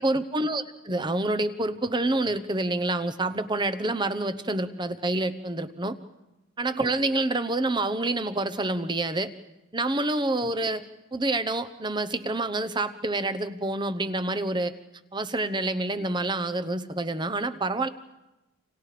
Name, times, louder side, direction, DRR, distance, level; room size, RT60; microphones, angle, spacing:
voice 1, 0.0-6.0 6.6-9.3 9.7-10.8 11.1-14.7 15.1-17.9, right 2 dB, 20° right, 10 dB, 1.0 m, -27 dB
29.5 x 27.5 x 5.1 m, 1.0 s
head